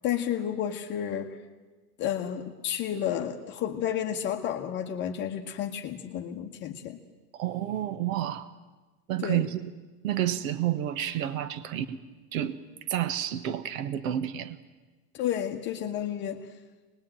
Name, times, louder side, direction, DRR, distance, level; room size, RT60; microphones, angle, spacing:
voice 1, 0.0-1.4 2.0-7.0 9.2-9.5 15.1-16.5, left 10 dB, 25° left, 2 dB, 1.1 m, -31 dB
voice 2, 7.3-8.5 9.1-9.7 10.0-12.0 12.3-12.6 12.9-14.6, right 12 dB, 60° right, 13 dB, 1.4 m, -30 dB
25.0 x 20.5 x 9.0 m, 1.2 s
supercardioid pair, 170°, 44 cm